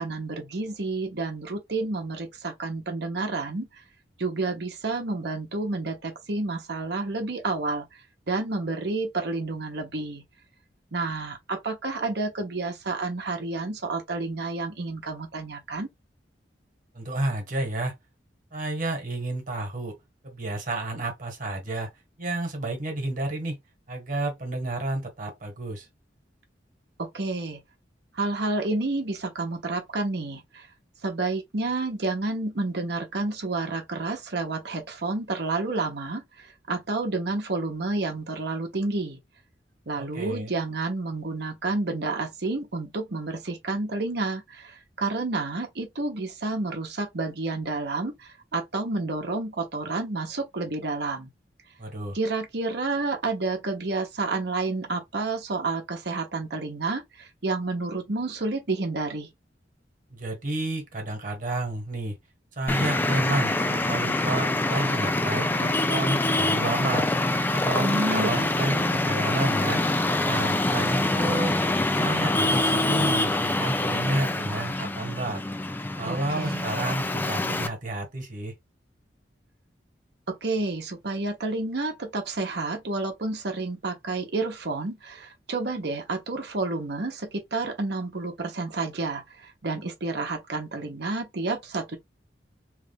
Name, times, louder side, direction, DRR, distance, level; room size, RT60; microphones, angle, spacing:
voice 1, 0.0-3.7 4.2-8.0 8.3-10.2 10.9-15.9 27.0-27.6 28.1-30.7 31.0-39.2 39.9-51.3 52.1-59.3 67.8-69.0 76.1-76.7 80.3-92.0, right 3 dB, 65° right, 1.0 m, -30 dB
voice 2, 16.9-17.9 18.5-20.0 20.2-21.9 22.2-23.6 23.9-25.9 40.0-40.5 51.8-52.2 60.1-62.2 62.5-67.1 67.5-69.8 70.2-71.5 71.9-75.4 76.0-78.5, right 2 dB, 50° right, 1.4 m, -31 dB
Traffic noise roadway noise, 62.7-77.7, left 2 dB, 10° left, 0.4 m, -25 dB
3.2 x 2.5 x 3.4 m
head